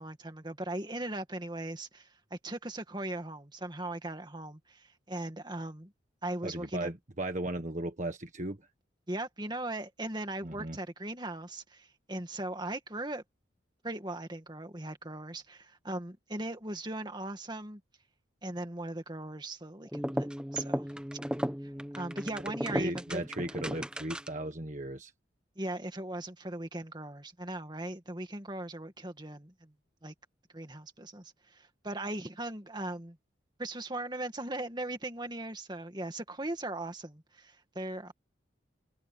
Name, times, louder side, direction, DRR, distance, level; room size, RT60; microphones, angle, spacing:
voice 1, 0.0-5.9 6.2-6.9 9.1-13.2 13.8-17.8 18.4-20.9 21.6-23.2 25.6-29.7 30.0-30.1 30.5-33.2 33.6-38.1, right 1 dB, 25° right, 2.1 m, -39 dB
voice 2, 6.4-8.7 10.4-10.8 21.7-21.9 22.7-25.1, right 1 dB, 40° right, 1.5 m, -36 dB
sound 1, 19.9-24.5, equal, 5° right, 1.1 m, -35 dB
head